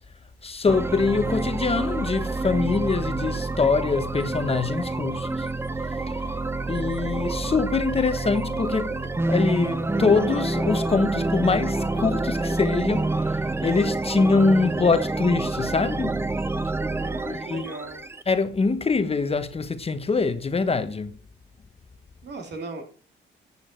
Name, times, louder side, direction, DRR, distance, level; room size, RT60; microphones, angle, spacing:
voice 1, 0.4-5.5 6.1-6.4 6.7-16.2 17.3-17.7 18.3-21.1, left 4 dB, 30° left, 1.1 m, -24 dB
sound 1, 0.7-18.2, right 2 dB, 10° right, 0.7 m, -28 dB
sound 2, 5.9-10.9, right 7 dB, 80° right, 2.2 m, -45 dB
voice 2, 17.0-18.0 22.2-22.8, right 3 dB, 60° right, 3.3 m, -37 dB
11.0 x 8.4 x 4.6 m
cardioid pair, 90°, 20 cm